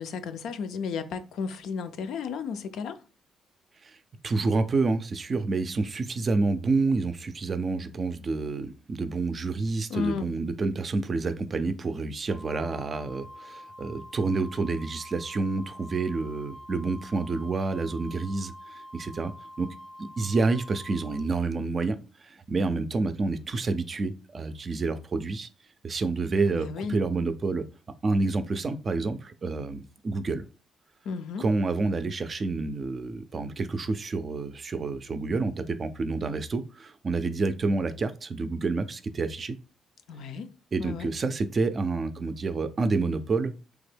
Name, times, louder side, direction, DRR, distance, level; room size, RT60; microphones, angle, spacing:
voice 1, 0.0-3.0 9.9-10.3 26.5-27.0 31.1-31.4 40.1-40.5 40.8-41.1, left 5 dB, 80° left, 0.4 m, -33 dB
voice 2, 4.2-19.3 19.6-19.7 20.0-25.5 25.8-27.6 28.0-30.4 31.4-39.6 40.7-43.6, right 3 dB, 40° right, 0.4 m, -28 dB
Wind instrument woodwind instrument, 12.3-21.3, equal, 10° left, 0.6 m, -46 dB
3.4 x 2.2 x 3.3 m
cardioid pair, 90°, 0 cm